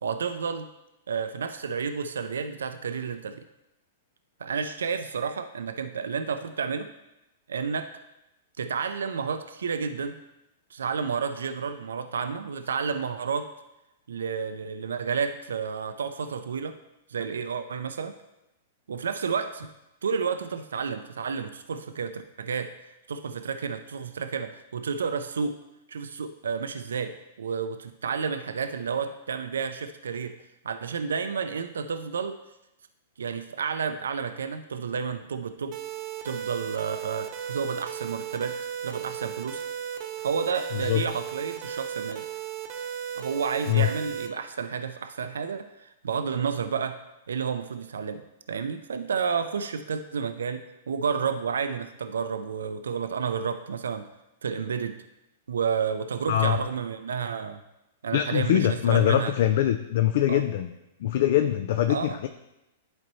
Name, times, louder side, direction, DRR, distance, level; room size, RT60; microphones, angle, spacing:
voice 1, 0.0-0.7 1.1-3.4 4.4-6.9 7.5-7.9 8.6-10.2 10.7-13.5 14.1-16.8 17.1-18.1 18.9-19.7 20.0-22.7 23.1-25.6 25.9-30.3 30.6-32.4 33.2-35.8 36.2-38.6 38.8-39.6 40.2-42.3 43.2-47.0 47.3-48.2 48.5-54.1 54.4-54.9 55.5-57.6 58.0-59.3 60.3-60.4 61.9-62.2, right 6 dB, 80° right, 9 dB, 0.4 m, -31 dB
sound 1, 35.7-44.3, right 9 dB, 40° right, 0.9 m, -35 dB
voice 2, 56.3-56.6 58.1-60.7 61.0-62.3, left 12 dB, 60° left, 8 dB, 0.4 m, -23 dB
11.0 x 4.3 x 3.1 m, 0.92 s
hypercardioid pair, 110°, 0 cm